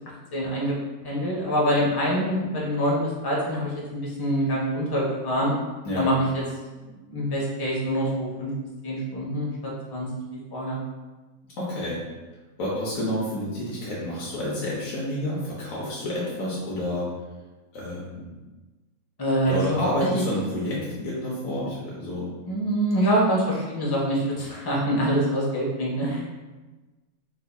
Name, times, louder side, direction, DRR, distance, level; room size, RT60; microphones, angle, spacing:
voice 1, 0.3-0.7 1.0-5.5 5.9-6.4 7.0-8.5 8.8-10.1 10.5-10.8 19.2-20.2 22.5-26.3, equal, 25° left, -4 dB, 0.5 m, -25 dB
voice 2, 11.6-12.0 12.6-17.1 17.7-18.3 19.5-22.3, left 1 dB, 70° left, -6 dB, 1.2 m, -29 dB
3.6 x 3.4 x 2.2 m, 1.2 s
omnidirectional pair, 1.5 m